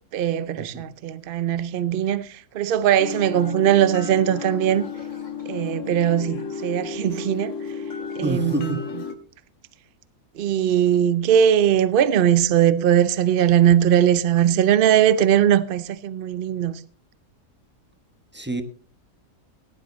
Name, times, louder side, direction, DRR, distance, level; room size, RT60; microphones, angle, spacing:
voice 1, 0.1-4.9 5.5-7.5 8.2-8.8 10.4-16.8, right 10 dB, 60° right, 0.5 m, -20 dB
sound 1, 3.0-9.2, left 6 dB, 55° left, 1.4 m, -33 dB
voice 2, 8.2-8.8 18.3-18.6, right 1 dB, 10° right, 0.5 m, -27 dB
17.0 x 10.5 x 3.1 m
omnidirectional pair, 1.8 m